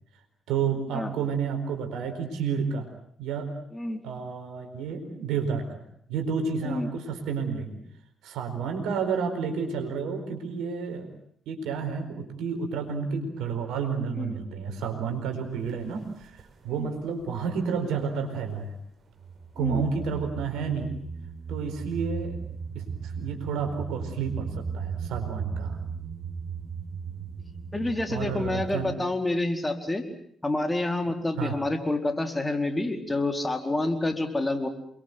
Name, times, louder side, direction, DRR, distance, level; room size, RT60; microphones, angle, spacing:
voice 1, 0.5-2.9 3.2-3.5 4.0-5.8 6.1-7.8 8.2-11.1 11.5-18.7 19.6-20.9 21.5-22.4 22.7-25.8 28.1-28.9 31.4-31.6, right 6 dB, 75° right, 5 dB, 4.5 m, -30 dB
sound 1, 15.5-15.7 16.2-17.3 17.7-18.6 19.2-28.8, right 6 dB, 55° right, 5.8 m, -37 dB
voice 2, 27.7-30.0 30.4-34.7, left 2 dB, 20° left, 6 dB, 4.3 m, -28 dB
28.5 x 23.0 x 7.8 m, 0.65 s
hypercardioid pair, 40°, 0 cm